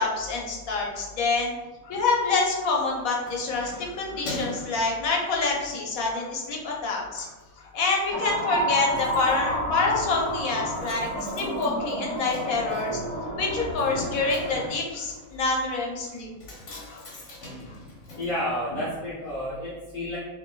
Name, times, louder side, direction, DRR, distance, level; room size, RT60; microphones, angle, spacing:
voice 1, 0.0-1.5 1.8-13.0 13.4-16.3 16.9-17.1 17.6-17.8, left 3 dB, 75° left, -2 dB, 1.2 m, -27 dB
Keys jangling, 2.7-5.7 6.2-6.4 6.8-7.5 7.7-7.8 8.1-8.2 8.4-19.2 19.5-19.6, left 1 dB, 55° left, 1.4 m, -44 dB
sound 1, 8.1-14.7, right 1 dB, 25° right, 1.1 m, -30 dB
voice 2, 18.2-20.2, left 1 dB, 40° left, -10 dB, 1.1 m, -30 dB
5.8 x 2.9 x 2.2 m, 1.2 s
omnidirectional pair, 1.5 m